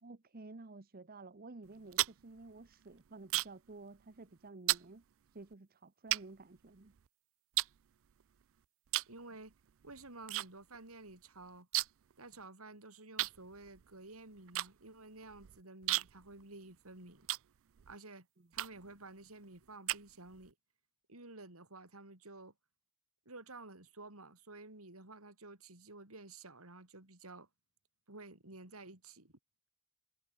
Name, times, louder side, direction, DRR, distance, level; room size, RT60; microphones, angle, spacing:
voice 1, 0.0-5.0 5.3-6.9 18.4-18.5, right 3 dB, 45° right, 1.0 m, -52 dB
sound 1, 1.6-3.7 4.0-4.3 4.7-4.9 5.5-5.6 6.1-7.1 7.5-8.4 8.9-9.2 9.5-10.5 10.7-10.8 11.1-12.1 12.4-12.5 13.2-17.9 18.5-19.0 19.4-20.5, right 17 dB, 70° right, 0.4 m, -36 dB
voice 2, 9.1-9.5 9.8-11.7 12.2-17.3 17.9-18.3 18.5-20.5 21.1-22.5 23.2-27.5 28.1-29.3, right 2 dB, 85° right, 5.0 m, -52 dB
head